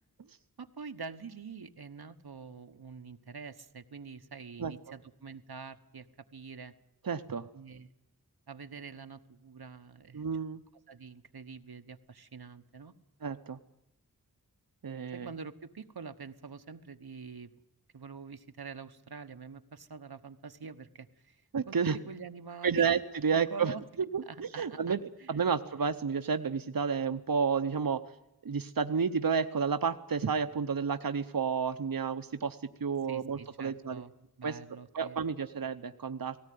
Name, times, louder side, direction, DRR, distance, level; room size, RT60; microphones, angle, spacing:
voice 1, 0.6-6.1 6.3-6.7 7.5-7.9 8.5-10.2 10.9-12.9 15.1-17.6 17.9-21.4 21.7-22.9 23.3-23.8 24.3-25.5 33.1-34.1 34.4-35.2, right 5 dB, 90° right, 8 dB, 1.2 m, -46 dB
voice 2, 7.0-7.5 10.1-10.6 13.2-13.6 14.8-15.3 21.5-22.0 22.6-23.7 24.1-25.0 25.3-28.0 28.4-34.0 34.4-34.6 34.9-36.4, right 6 dB, 65° right, 9 dB, 0.9 m, -31 dB
18.5 x 17.5 x 9.4 m, 0.86 s
wide cardioid pair, 65°, 37 cm